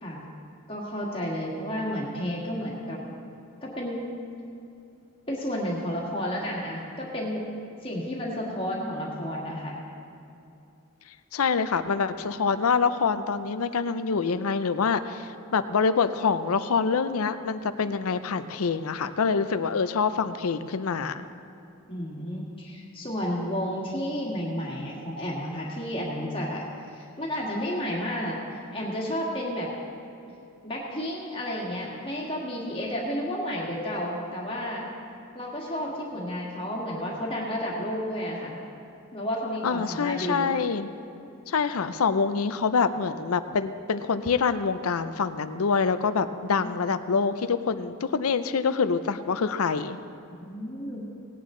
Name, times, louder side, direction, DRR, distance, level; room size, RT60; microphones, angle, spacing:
voice 1, 0.7-3.0 3.6-4.0 5.3-7.4 7.8-9.8 21.9-29.7 30.6-34.9 35.3-38.6 39.1-40.5 46.5-46.7 50.4-51.1, equal, 25° left, -4 dB, 1.9 m, -31 dB
voice 2, 11.3-21.3 39.6-40.9 41.5-50.0, left 5 dB, 80° left, 11 dB, 0.5 m, -26 dB
18.0 x 9.3 x 3.8 m, 2.7 s
head